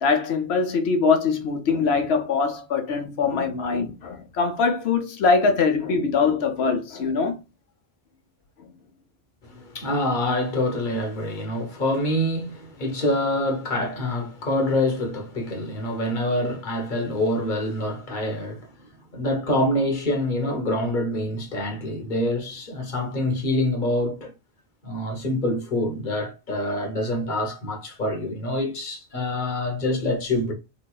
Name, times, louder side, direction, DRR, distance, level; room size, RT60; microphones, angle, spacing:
voice 1, 0.0-7.4, left 4 dB, 90° left, 1.0 m, -22 dB
voice 2, 9.4-18.7 19.1-24.3 24.8-30.5, left 1 dB, 55° left, 1.0 m, -26 dB
3.8 x 3.0 x 2.3 m
omnidirectional pair, 1.0 m